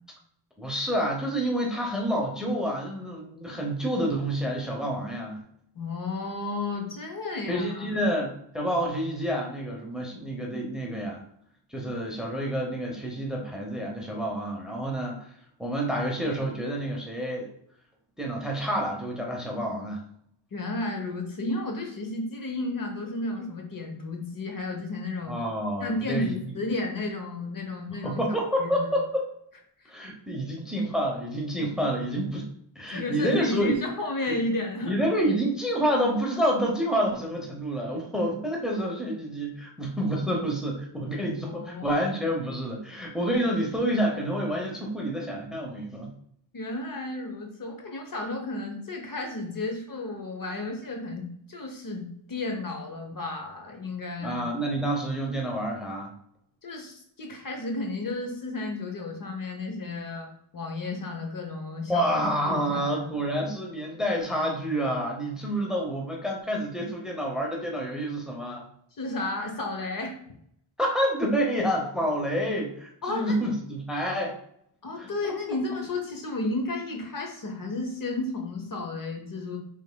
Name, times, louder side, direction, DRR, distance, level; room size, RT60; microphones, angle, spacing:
voice 1, 0.6-5.4 7.5-11.2 11.7-15.3 15.6-17.5 18.2-20.0 25.3-26.3 28.0-29.3 29.9-32.5 32.8-33.8 34.3-34.4 34.8-46.1 54.2-56.1 61.9-68.7 70.8-74.3 75.0-75.3, equal, ahead, 0 dB, 0.8 m, -28 dB
voice 2, 5.8-7.9 20.5-25.4 25.8-28.2 28.6-28.9 29.8-29.9 32.9-35.0 41.4-42.1 46.5-54.4 56.6-63.0 69.0-70.2 73.0-73.5 74.8-79.6, left 2 dB, 45° left, 2 dB, 0.9 m, -33 dB
5.4 x 3.5 x 2.2 m, 0.70 s
wide cardioid pair, 115°, 49 cm